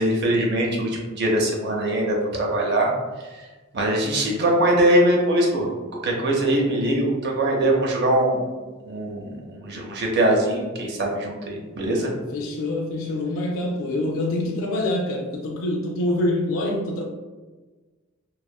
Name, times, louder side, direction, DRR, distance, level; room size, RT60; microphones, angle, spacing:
voice 1, 0.0-2.9 3.2-3.4 3.7-5.7 6.0-8.4 8.8-12.1, right 1 dB, 55° right, -1 dB, 0.6 m, -22 dB
voice 2, 12.3-17.0, left 1 dB, 80° left, 0 dB, 0.3 m, -26 dB
2.6 x 2.4 x 2.2 m, 1.3 s
head